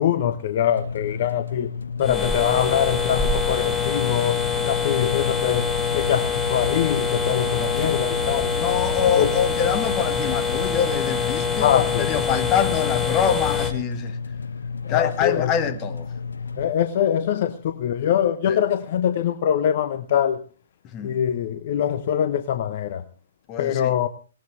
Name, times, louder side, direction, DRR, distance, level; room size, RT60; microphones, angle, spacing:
voice 1, 0.0-1.7 2.0-8.5 9.2-9.3 11.5-12.2 14.8-15.5 16.5-20.4 21.0-23.0 23.6-24.1, left 9 dB, 50° left, 1.1 m, -23 dB
sound 1, 0.7-16.7, left 5 dB, 80° left, 1.0 m, -32 dB
sound 2, 2.0-13.7, left 5 dB, 10° left, 2.3 m, -25 dB
voice 2, 8.6-14.2 14.9-16.1 18.5-18.6 20.9-21.2 23.5-24.0, left 8 dB, 30° left, 1.8 m, -25 dB
19.0 x 18.5 x 3.4 m
figure-of-eight pair, 120°, 0 cm